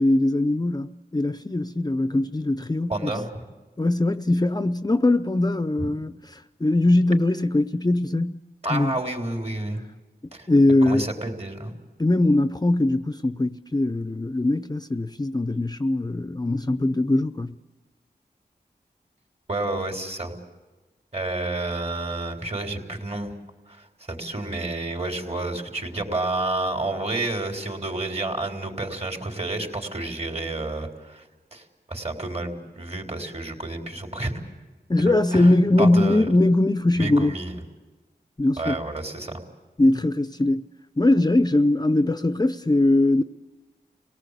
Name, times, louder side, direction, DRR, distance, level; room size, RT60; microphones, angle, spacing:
voice 1, 0.0-3.1 3.8-8.4 8.7-9.0 10.5-11.1 12.0-17.6 34.9-37.4 38.4-38.8 39.8-40.6 41.0-43.2, left 2 dB, 25° left, 0.7 m, -21 dB
voice 2, 2.9-3.5 8.6-9.8 10.3-10.5 10.8-11.7 19.5-20.3 21.1-23.3 23.7-31.2 31.5-34.4 35.0-36.3 36.9-37.5 38.6-39.4, right 2 dB, 40° right, 4.0 m, -30 dB
27.0 x 18.0 x 8.3 m
cardioid pair, 50°, 17 cm